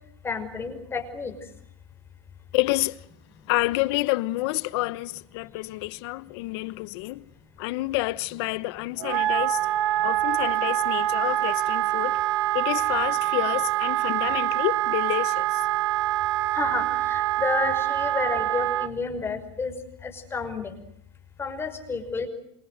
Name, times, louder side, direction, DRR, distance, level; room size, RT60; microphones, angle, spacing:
voice 1, 0.2-1.3 16.5-19.7 20.0-20.7 21.4-22.3, left 4 dB, 15° left, 5.8 m, -30 dB
voice 2, 2.5-3.0 3.5-7.3 7.6-9.6 10.0-12.2 12.5-15.6, left 20 dB, 60° left, 1.2 m, -28 dB
Wind instrument woodwind instrument, 9.0-18.9, right 14 dB, 65° right, 1.9 m, -25 dB
27.5 x 25.5 x 8.0 m
supercardioid pair, 135°, 16 cm